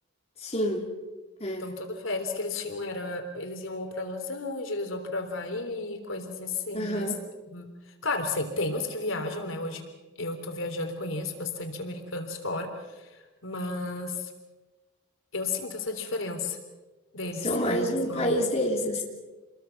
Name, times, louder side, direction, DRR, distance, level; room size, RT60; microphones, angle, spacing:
voice 1, 0.4-0.9 1.4-1.7 6.7-7.2 17.4-19.0, equal, 30° left, -1 dB, 3.1 m, -27 dB
voice 2, 1.6-7.1 7.5-7.7 8.0-9.8 10.2-14.3 15.3-16.6 17.1-18.4, left 3 dB, 75° left, 5 dB, 3.5 m, -33 dB
28.0 x 21.5 x 6.0 m, 1.2 s
head